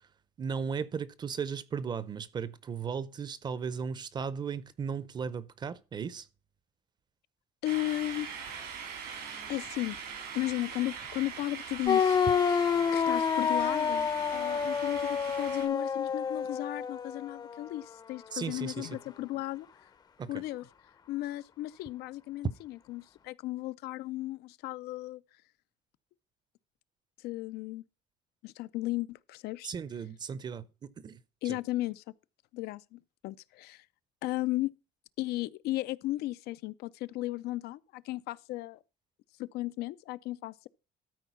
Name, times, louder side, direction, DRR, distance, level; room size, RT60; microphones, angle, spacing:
voice 1, 0.4-6.3 18.3-19.0 20.2-20.3 29.6-31.2 31.4-31.6, right 6 dB, 25° right, 0.6 m, -36 dB
voice 2, 7.6-8.3 9.5-10.0 10.3-19.7 20.3-20.7 21.1-25.2 27.2-27.8 28.4-29.7 31.4-32.0 32.5-33.8 34.2-34.7 35.2-38.8 39.4-40.7, left 17 dB, 85° left, 0.5 m, -35 dB
sound 1, 7.6-15.7, right 6 dB, 85° right, 4.0 m, -42 dB
sound 2, 11.9-17.6, left 6 dB, 25° left, 0.6 m, -28 dB
13.0 x 4.5 x 5.6 m
cardioid pair, 165°, 16 cm